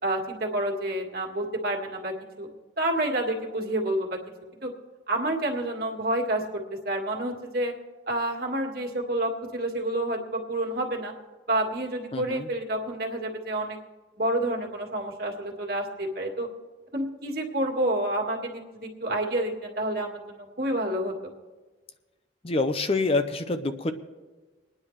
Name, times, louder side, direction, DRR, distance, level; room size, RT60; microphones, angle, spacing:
voice 1, 0.0-2.5 2.8-4.2 4.6-4.7 5.1-7.7 8.1-11.1 11.5-13.8 14.2-16.5 16.9-21.3, right 1 dB, 55° right, 0 dB, 1.7 m, -29 dB
voice 2, 12.1-12.5 22.4-23.9, left 3 dB, 30° left, 9 dB, 0.5 m, -26 dB
26.0 x 9.8 x 3.2 m, 1.3 s
head